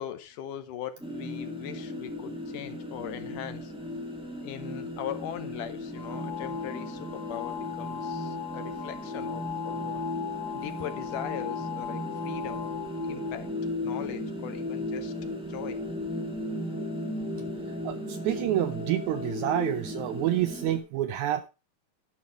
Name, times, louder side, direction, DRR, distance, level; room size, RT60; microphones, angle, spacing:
voice 1, 0.0-3.7 4.4-10.0 10.5-12.7 13.0-13.5 13.8-15.1 15.5-15.8 20.7-20.8, left 10 dB, 75° left, 2.5 m, -40 dB
sound 1, 1.0-20.8, left 1 dB, 5° right, 0.5 m, -36 dB
sound 2, 5.9-13.5, left 10 dB, 55° left, 1.8 m, -39 dB
voice 2, 17.8-21.5, right 13 dB, 80° right, 1.7 m, -28 dB
11.0 x 6.6 x 5.0 m
omnidirectional pair, 3.9 m